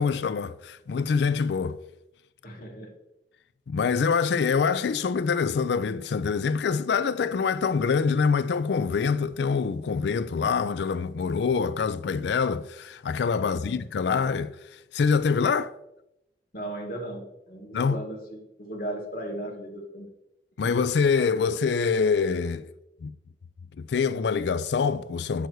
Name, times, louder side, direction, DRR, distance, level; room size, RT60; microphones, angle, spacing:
voice 1, 0.0-1.8 3.7-15.7 17.7-18.0 20.6-22.7 23.0-23.1 23.8-25.5, left 5 dB, 70° left, 0.4 m, -25 dB
voice 2, 2.4-2.9 13.4-13.8 16.5-20.1 20.6-20.8, right 1 dB, 55° left, 1.9 m, -37 dB
8.1 x 6.4 x 4.6 m
head